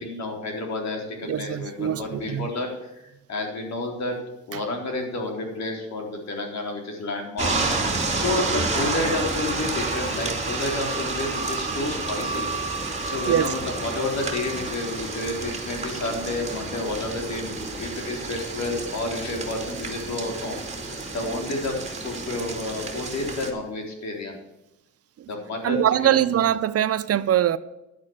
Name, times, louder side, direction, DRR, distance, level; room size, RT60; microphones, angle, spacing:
voice 1, 0.0-3.0 3.3-4.2 4.5-12.5 13.0-21.7 22.0-24.4 25.3-26.3, left 2 dB, 65° left, 3.9 m, -30 dB
voice 2, 1.3-2.5 13.3-13.5 25.6-27.6, right 11 dB, 55° right, 0.6 m, -22 dB
sound 1, 7.4-23.5, right 3 dB, 20° right, 2.6 m, -30 dB
11.0 x 8.4 x 7.3 m
cardioid pair, 90°, 30 cm